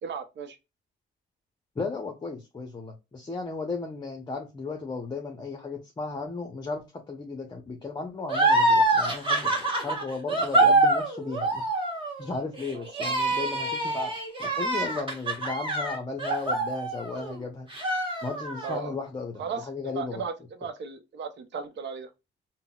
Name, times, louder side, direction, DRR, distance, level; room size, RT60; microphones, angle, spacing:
voice 1, 0.0-0.6 12.7-13.2 18.6-19.0 19.4-19.7 19.9-20.3 20.6-22.1, right 6 dB, 65° right, 0.7 m, -35 dB
voice 2, 1.8-11.6 12.2-14.1 14.4-17.7 18.2-20.2, left 3 dB, 20° left, 0.6 m, -35 dB
sound 1, 8.3-17.4 17.7-18.8, right 2 dB, 25° right, 1.2 m, -25 dB
3.8 x 2.1 x 2.3 m
cardioid pair, 90°, 20 cm